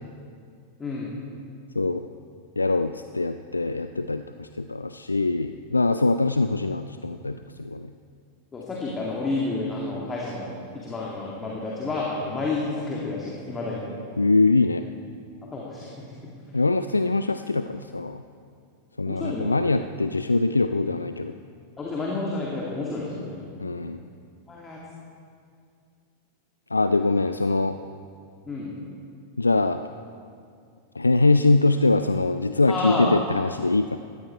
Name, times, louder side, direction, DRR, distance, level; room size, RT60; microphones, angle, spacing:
voice 1, 0.8-1.1 8.5-13.8 15.5-15.9 19.1-19.6 21.8-24.0 24.5-24.8 28.5-28.7 32.7-33.1, left 3 dB, 20° left, -4 dB, 2.2 m, -30 dB
voice 2, 1.8-2.1 2.6-7.9 14.2-14.8 16.5-18.2 19.0-21.3 23.6-24.0 26.7-27.8 29.4-29.8 31.0-34.0, left 3 dB, 80° left, 10 dB, 0.3 m, -23 dB
17.0 x 13.5 x 4.5 m, 2.3 s
figure-of-eight pair, 90°, 0 cm